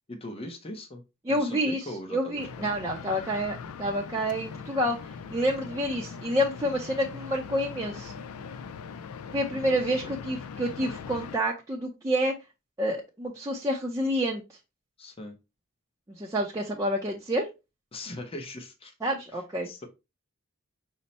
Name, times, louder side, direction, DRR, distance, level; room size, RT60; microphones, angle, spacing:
voice 1, 0.1-1.0 1.3-2.4 9.5-10.1 15.0-15.3 17.9-18.9 19.3-19.9, left 1 dB, 25° left, 3 dB, 0.7 m, -40 dB
voice 2, 1.2-5.0 5.3-8.1 9.3-12.3 12.8-14.4 16.2-17.5 19.0-19.7, equal, 15° right, -2 dB, 0.5 m, -28 dB
sound 1, 2.4-11.4, left 6 dB, 80° left, 0.4 m, -41 dB
5.4 x 2.1 x 4.0 m, 0.26 s
head